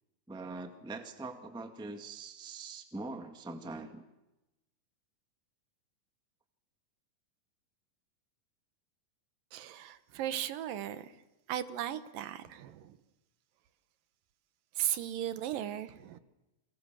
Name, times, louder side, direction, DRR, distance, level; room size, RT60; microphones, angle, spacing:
voice 1, 0.3-4.0, right 3 dB, 5° right, 0.9 m, -43 dB
voice 2, 9.5-11.1 11.5-13.0 14.8-16.2, right 11 dB, 85° right, 2.9 m, -36 dB
29.0 x 24.0 x 7.5 m
omnidirectional pair, 3.9 m